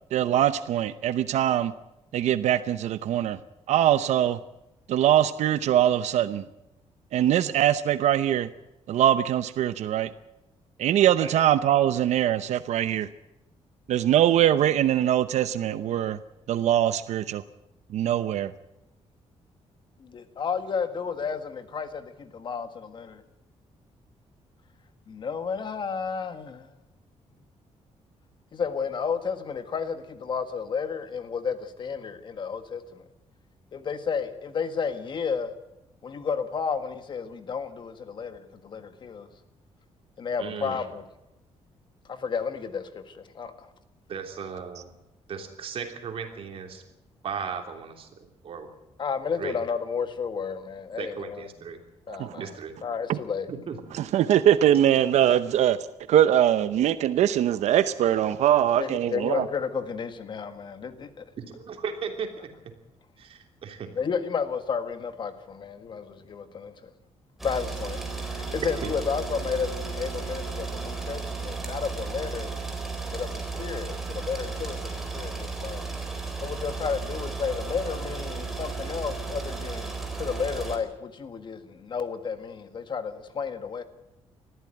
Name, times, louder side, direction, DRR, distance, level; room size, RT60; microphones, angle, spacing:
voice 1, 0.1-1.7 2.1-3.4 3.7-4.4 4.9-6.4 7.1-8.5 8.9-10.1 10.8-13.1 13.9-16.2 16.5-17.4 17.9-18.5 52.1-52.3 53.1-53.2 53.9-55.8 56.1-59.4, right 11 dB, 80° right, 13 dB, 0.7 m, -22 dB
voice 2, 20.0-23.2 25.1-26.7 28.5-33.0 33.7-35.5 36.0-39.3 40.2-41.1 42.1-43.7 49.0-51.5 52.1-53.5 58.8-61.2 63.9-66.9 67.4-72.5 73.1-75.8 76.4-83.8, left 6 dB, 45° left, 10 dB, 1.7 m, -32 dB
voice 3, 40.4-40.8 44.1-44.9 45.3-46.8 47.2-48.7 49.4-49.6 51.0-51.8 52.4-52.7 53.5-53.8 61.4-62.5 63.2-63.9 68.8-68.9, right 6 dB, 55° right, 4 dB, 3.3 m, -36 dB
sound 1, 67.4-80.8, right 4 dB, ahead, 4.0 m, -34 dB
20.5 x 14.5 x 9.1 m, 0.91 s
cardioid pair, 145°, 12 cm